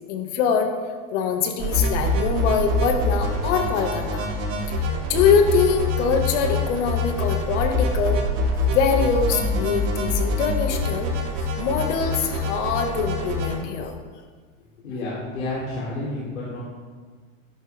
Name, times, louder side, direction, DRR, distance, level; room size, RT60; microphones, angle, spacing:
voice 1, 0.1-0.7 1.1-4.3 4.7-4.8 5.1-8.2 8.7-11.1 11.4-13.9, left 6 dB, 60° left, 4 dB, 2.0 m, -23 dB
sound 1, 1.6-13.6, left 1 dB, 55° right, 4.1 m, -25 dB
voice 2, 14.8-16.6, left 2 dB, 85° left, -7 dB, 3.6 m, -30 dB
13.5 x 11.0 x 3.6 m, 1.5 s
hypercardioid pair, 110°, 40 cm